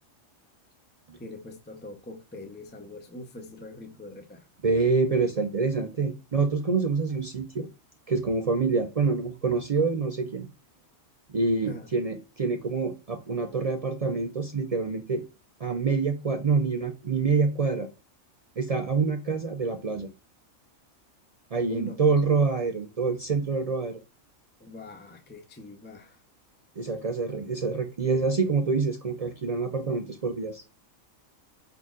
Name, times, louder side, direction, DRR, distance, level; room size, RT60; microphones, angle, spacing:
voice 1, 1.2-4.5 11.6-11.9 21.7-22.0 24.6-26.2, equal, 10° left, 0.5 m, -42 dB
voice 2, 4.6-7.7 8.1-10.5 11.3-15.2 15.6-17.9 18.6-20.1 21.5-24.0 26.8-30.6, right 4 dB, 65° right, 0.3 m, -26 dB
5.4 x 4.2 x 2.4 m
omnidirectional pair, 1.4 m